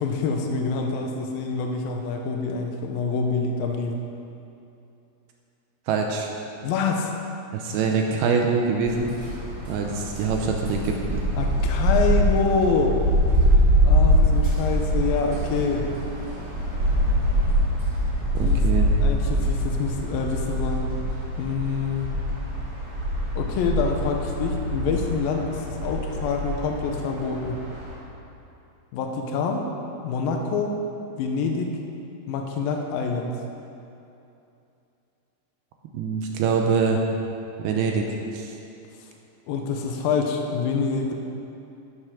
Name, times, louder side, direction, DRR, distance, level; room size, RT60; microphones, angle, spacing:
voice 1, 0.0-4.0 6.6-7.1 11.4-13.0 13.8-15.9 18.4-18.6 19.0-21.0 21.4-22.2 23.4-27.6 28.9-29.6 30.0-30.8 31.2-31.8 32.3-33.3 39.5-41.1, left 5 dB, 90° left, 2 dB, 2.0 m, -26 dB
voice 2, 5.9-6.3 7.5-9.1 9.7-11.2 18.3-18.9 35.9-37.0 37.6-38.0 38.3-38.6, right 5 dB, 80° right, 1 dB, 2.3 m, -24 dB
sound 1, 8.8-27.9, equal, 45° right, 1.2 m, -24 dB
12.5 x 8.2 x 6.0 m, 2.8 s
omnidirectional pair, 5.3 m